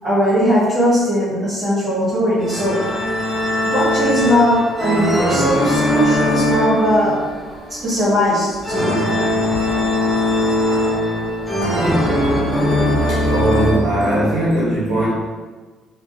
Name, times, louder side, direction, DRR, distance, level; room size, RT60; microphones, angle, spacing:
voice 1, 0.0-2.8 3.6-7.2 7.8-9.0, equal, 40° right, -12 dB, 1.5 m, -18 dB
sound 1, 2.4-13.7, left 1 dB, ahead, 0.7 m, -20 dB
voice 2, 13.1-15.1, right 1 dB, 80° right, -8 dB, 0.9 m, -19 dB
3.3 x 2.4 x 2.5 m, 1.3 s
cardioid pair, 100°, 0 cm